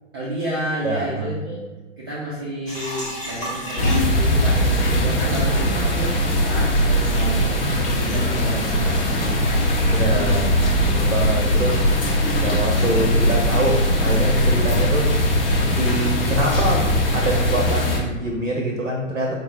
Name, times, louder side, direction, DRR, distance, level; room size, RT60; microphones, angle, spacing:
voice 1, 0.1-1.6 2.0-10.0, right 1 dB, 20° right, -7 dB, 0.4 m, -31 dB
voice 2, 0.8-1.3 9.9-11.8 12.4-15.1 15.6-16.8 17.1-19.3, right 1 dB, 90° right, 0 dB, 0.7 m, -25 dB
sound 1, 2.7-13.8, left 2 dB, 10° left, 1.0 m, -36 dB
sound 2, 3.8-18.0, equal, 45° left, 0.8 m, -20 dB
Wind instrument woodwind instrument, 4.4-7.9, right 1 dB, 90° left, 1.4 m, -41 dB
4.5 x 2.2 x 3.0 m, 1.2 s
figure-of-eight pair, 115°, 38 cm